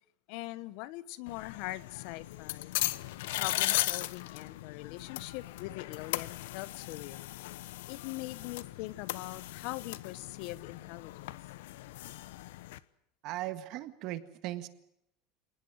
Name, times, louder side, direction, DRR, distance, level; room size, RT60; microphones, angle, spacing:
voice 1, 0.3-2.7 3.4-7.2 7.9-11.4, left 18 dB, 50° left, 18 dB, 1.0 m, -42 dB
sound 1, 1.3-12.8, left 17 dB, 85° left, 1.0 m, -37 dB
voice 2, 13.2-14.7, right 15 dB, 40° right, 12 dB, 1.8 m, -38 dB
27.5 x 19.5 x 7.9 m, 0.77 s
cardioid pair, 180°, 0 cm